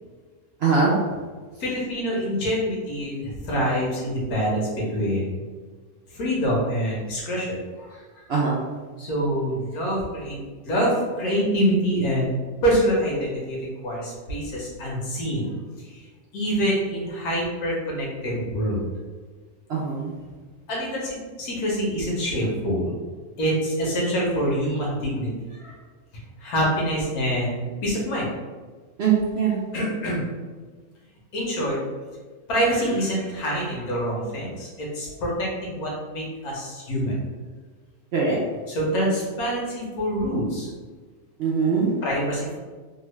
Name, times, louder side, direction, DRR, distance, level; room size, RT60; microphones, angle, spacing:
voice 1, 0.6-1.0 8.3-8.6 19.7-20.1 29.0-29.5 38.1-38.4 41.4-41.9, right 5 dB, 65° right, -4 dB, 0.6 m, -21 dB
voice 2, 1.6-5.4 6.1-8.0 9.0-10.4 10.6-12.4 12.6-15.5 15.8-16.0 16.3-18.8 20.7-22.9 23.4-25.7 26.4-28.3 29.7-30.3 31.3-31.8 32.5-37.1 38.7-40.7 42.0-42.6, equal, 85° left, -3 dB, 1.4 m, -25 dB
3.2 x 2.3 x 3.1 m, 1.4 s
omnidirectional pair, 1.5 m